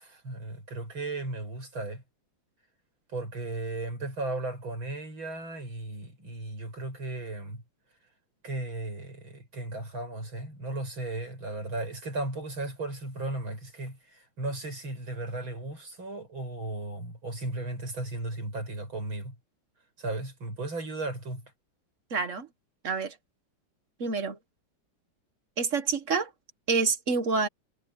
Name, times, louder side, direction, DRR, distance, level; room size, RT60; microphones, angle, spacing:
voice 1, 0.0-2.0 3.1-7.6 8.4-19.3 20.0-21.5, right 2 dB, 85° right, 8.6 m, -35 dB
voice 2, 22.1-22.5 22.8-23.1 24.0-24.4 25.6-26.3 26.7-27.5, right 4 dB, 40° right, 1.5 m, -27 dB
omnidirectional pair, 2.2 m